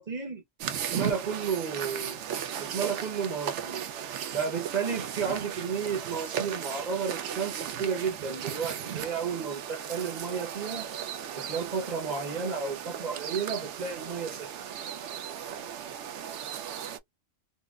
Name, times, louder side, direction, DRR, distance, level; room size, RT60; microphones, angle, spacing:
voice 1, 0.0-2.2 2.6-3.8 4.3-10.9 11.4-14.5, right 6 dB, 35° right, 1.0 m, -32 dB
sound 1, 0.6-17.0, right 9 dB, 70° right, 0.9 m, -36 dB
4.0 x 2.1 x 2.4 m
omnidirectional pair, 1.3 m